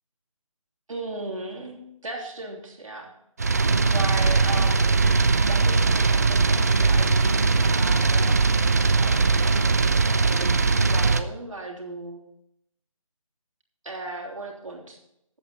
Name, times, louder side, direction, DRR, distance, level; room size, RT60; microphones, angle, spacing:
voice 1, 0.9-3.1 3.9-5.0 5.5-12.2 13.8-15.0, right 2 dB, 65° right, -1 dB, 3.1 m, -37 dB
sound 1, 3.4-11.2, right 4 dB, 30° right, 0.5 m, -20 dB
13.0 x 8.5 x 4.1 m, 0.80 s
figure-of-eight pair, 165°, 18 cm